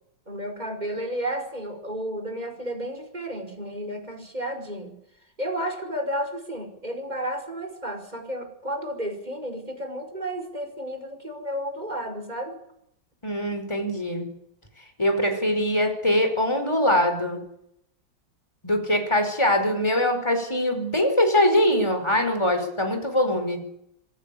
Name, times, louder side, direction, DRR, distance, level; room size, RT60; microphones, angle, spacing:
voice 1, 0.3-5.0 5.4-12.6, right 1 dB, 20° right, 5 dB, 5.3 m, -32 dB
voice 2, 13.2-14.3 15.0-17.4 18.6-23.6, left 1 dB, 15° left, 6 dB, 5.0 m, -22 dB
27.0 x 16.5 x 8.7 m, 0.75 s
omnidirectional pair, 2.2 m